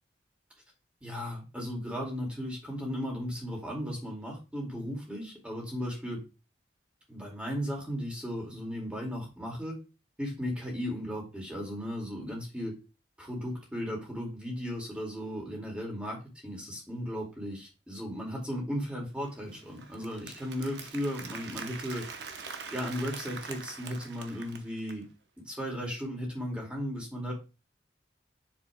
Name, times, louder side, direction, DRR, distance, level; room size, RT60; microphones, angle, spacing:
voice 1, 1.0-6.2 7.1-9.8 10.2-12.8 13.2-22.0 22.3-25.1 25.5-27.3, equal, 5° right, -2 dB, 2.2 m, -36 dB
Applause, 19.2-25.0, right 5 dB, 65° right, 0.9 m, -44 dB
7.5 x 6.8 x 2.3 m, 0.30 s
head